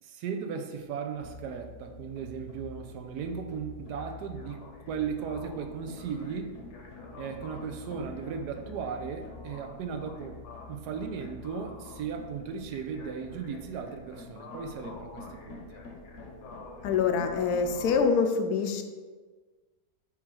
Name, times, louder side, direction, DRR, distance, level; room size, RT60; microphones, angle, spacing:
voice 1, 0.0-6.6 7.2-10.4 10.7-15.6, right 6 dB, 85° right, 5 dB, 1.2 m, -36 dB
sound 1, 0.7-18.0, left 3 dB, 50° left, 1.0 m, -46 dB
voice 2, 16.8-18.8, left 5 dB, 75° left, 7 dB, 1.1 m, -25 dB
7.0 x 3.2 x 4.7 m, 1.4 s
omnidirectional pair, 1.7 m